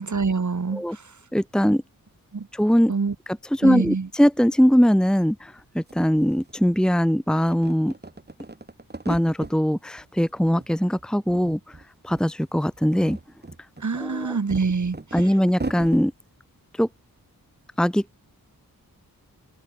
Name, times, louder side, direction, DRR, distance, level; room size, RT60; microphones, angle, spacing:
voice 1, 0.0-1.2 2.3-2.5 2.9-3.1 3.6-4.1 13.8-15.3, right 4 dB, 50° right, 7.6 m, -26 dB
voice 2, 1.3-1.8 2.5-2.9 3.5-7.9 9.1-11.8 12.0-13.2 14.0-14.4 15.1-16.1 16.8-16.9 17.8-18.0, equal, ahead, 1.5 m, -21 dB
sound 1, 5.6-5.7 5.9-7.0 7.4-9.6 10.0-10.7 11.0-11.8 12.1-12.3 12.7-16.0, right 2 dB, 25° right, 7.2 m, -37 dB
wide cardioid pair, 110°, 36 cm